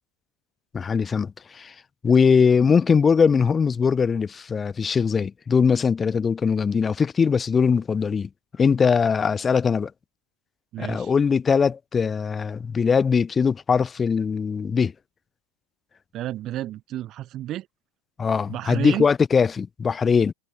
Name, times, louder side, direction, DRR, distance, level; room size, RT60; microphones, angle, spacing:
voice 1, 0.7-1.7 2.0-8.3 8.6-9.9 10.8-14.9 18.2-20.3, left 6 dB, 20° left, 0.9 m, -21 dB
voice 2, 10.7-11.1 16.1-17.7 18.5-19.1, right 13 dB, 40° right, 1.5 m, -31 dB
supercardioid pair, 140°, 0 cm